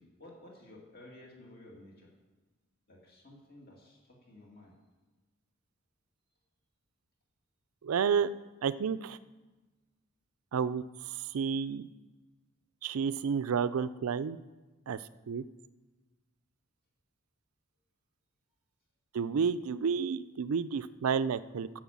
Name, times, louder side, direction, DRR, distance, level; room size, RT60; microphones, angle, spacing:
voice 1, 0.0-2.1 2.9-4.7 19.2-19.4, left 1 dB, 45° left, -3 dB, 2.2 m, -54 dB
voice 2, 7.8-8.3 8.6-9.2 10.5-10.8 11.3-11.9 12.8-14.4 14.9-15.0 15.3-15.4 19.1-21.7, right 6 dB, 85° right, 15 dB, 0.4 m, -30 dB
10.0 x 6.2 x 7.2 m, 1.2 s
head